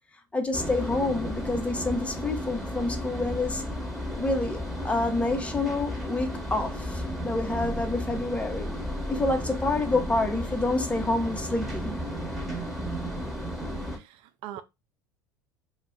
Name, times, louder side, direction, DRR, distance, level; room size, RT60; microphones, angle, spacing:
voice 1, 0.3-3.6 4.2-8.7 9.1-11.9, left 2 dB, 10° left, 0.7 m, -28 dB
sound 1, 0.5-14.0, equal, 5° right, 1.2 m, -33 dB
voice 2, 13.9-14.6, right 12 dB, 60° right, 0.4 m, -42 dB
2.3 x 2.1 x 3.6 m
hypercardioid pair, 75°, 10 cm